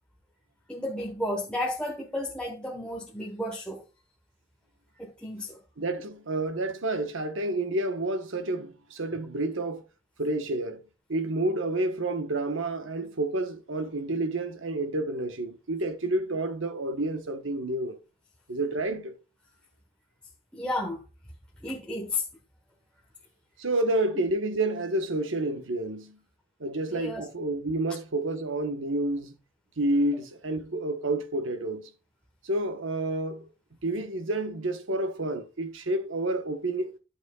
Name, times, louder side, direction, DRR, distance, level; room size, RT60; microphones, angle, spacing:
voice 1, 0.7-3.8 5.0-5.6 20.5-21.0 21.6-22.2 26.9-27.2, left 1 dB, 5° left, 1.2 m, -32 dB
voice 2, 5.8-9.8 10.2-10.8 11.1-18.0 18.5-19.1 23.6-26.2 26.6-29.3 29.8-31.9 32.4-33.5 33.8-36.9, right 2 dB, 75° right, 1.2 m, -29 dB
11.5 x 7.2 x 2.3 m
head